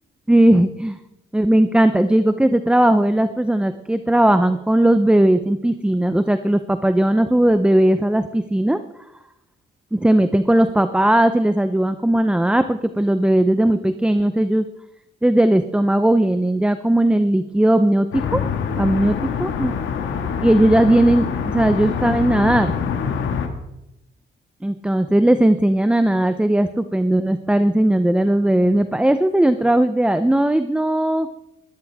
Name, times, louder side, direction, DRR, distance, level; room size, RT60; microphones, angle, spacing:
voice 1, 0.3-1.0 1.3-8.8 9.9-14.7 15.2-18.4 18.7-19.7 20.4-22.7 24.6-31.3, right 1 dB, 5° right, 10 dB, 0.7 m, -17 dB
sound 1, 18.1-23.5, left 6 dB, 75° left, 1.9 m, -25 dB
20.0 x 13.0 x 3.6 m, 0.88 s
cardioid pair, 90°, 20 cm